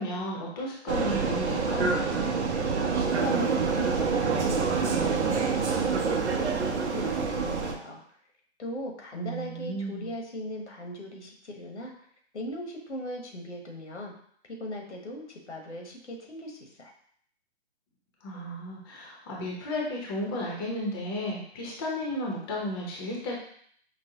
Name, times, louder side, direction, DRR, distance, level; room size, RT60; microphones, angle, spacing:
voice 1, 0.0-2.0 9.1-10.1 18.2-23.4, left 1 dB, 20° left, -3 dB, 0.6 m, -33 dB
Vehicle, 0.9-7.7, right 5 dB, 75° right, 0.7 m, -27 dB
voice 2, 2.6-8.0 8.6-11.9 12.3-14.1 14.6-16.9, left 1 dB, 85° left, 1 dB, 1.1 m, -38 dB
5.2 x 2.1 x 2.8 m, 0.62 s
figure-of-eight pair, 145°, 34 cm